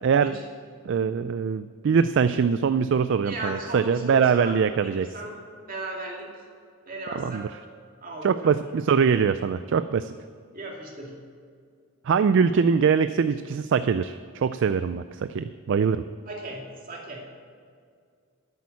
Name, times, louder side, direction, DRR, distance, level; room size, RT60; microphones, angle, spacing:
voice 1, 0.0-0.3 0.8-5.1 7.1-7.5 8.2-10.1 12.0-16.0, right 6 dB, 60° right, 12 dB, 0.3 m, -23 dB
voice 2, 3.2-5.3 5.7-6.3 6.9-7.5 8.0-8.5 10.5-11.2 16.3-17.2, right 1 dB, 40° right, -1 dB, 2.5 m, -36 dB
10.5 x 8.5 x 8.4 m, 2.1 s
head